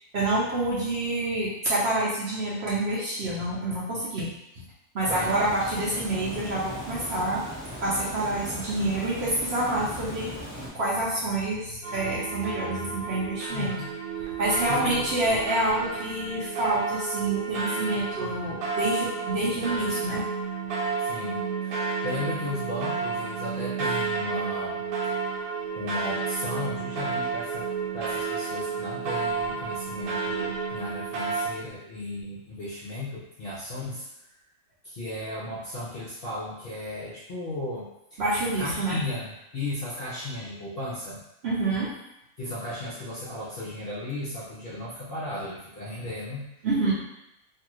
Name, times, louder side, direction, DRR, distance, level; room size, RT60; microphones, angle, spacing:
voice 1, 0.1-4.3 4.9-7.4 7.8-10.3 10.7-13.7 14.4-20.2 20.8-20.9 38.2-39.0 41.4-41.9 46.6-46.9, right 2 dB, 60° right, -7 dB, 0.8 m, -27 dB
Water, 5.0-10.7, equal, 20° right, 0.8 m, -38 dB
sound 1, 11.8-31.5, right 4 dB, 80° right, 1.0 m, -31 dB
voice 2, 13.5-13.9 14.7-15.0 21.0-25.5 25.7-27.7 27.9-34.4 34.8-38.2 38.6-41.2 42.4-46.4, left 1 dB, 55° left, -7 dB, 0.6 m, -35 dB
2.6 x 2.4 x 3.0 m, 0.86 s
omnidirectional pair, 1.5 m